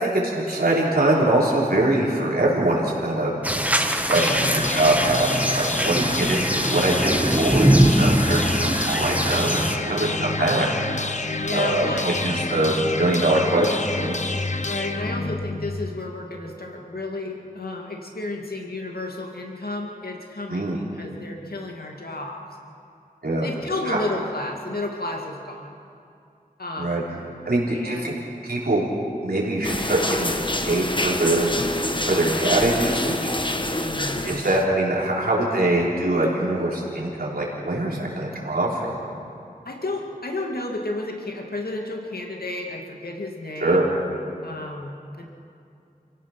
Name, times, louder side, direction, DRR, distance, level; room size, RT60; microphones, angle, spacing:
voice 1, 0.0-3.3 4.0-10.7 11.5-14.1 20.5-20.8 23.2-23.5 23.9-24.0 26.8-27.0 27.5-28.1 28.4-28.8 29.2-30.3 30.6-31.5 32.0-33.3 34.2-39.0 43.6-43.9, right 1 dB, 80° right, -4 dB, 4.5 m, -23 dB
sound 1, 3.4-9.8, right 1 dB, 10° right, 1.4 m, -22 dB
sound 2, 4.1-16.1, left 2 dB, 50° left, 1.0 m, -28 dB
voice 2, 5.7-6.3 9.9-10.2 11.4-12.3 14.6-22.4 23.4-25.7 26.6-26.9 27.7-28.1 33.6-34.4 39.6-43.9 44.4-45.3, left 2 dB, 80° left, 1 dB, 2.3 m, -32 dB
sound 3, 29.6-34.6, left 1 dB, 30° left, 1.3 m, -27 dB
28.5 x 16.5 x 6.0 m, 2.5 s
wide cardioid pair, 50°, 16 cm